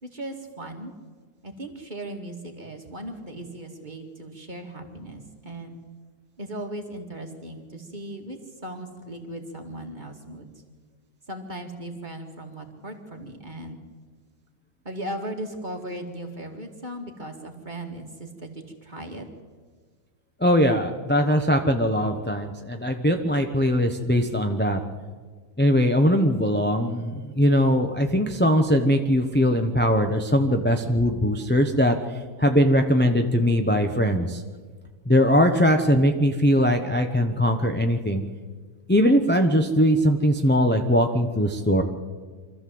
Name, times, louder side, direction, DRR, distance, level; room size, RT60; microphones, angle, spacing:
voice 1, 0.0-0.9 1.4-5.8 6.4-10.5 11.3-13.8 14.8-19.3, right 1 dB, 30° right, 3 dB, 2.4 m, -37 dB
voice 2, 20.4-24.8 25.6-34.4 35.1-38.2 38.9-41.8, equal, 10° left, 4 dB, 0.7 m, -21 dB
25.0 x 14.0 x 7.8 m, 1.5 s
omnidirectional pair, 1.6 m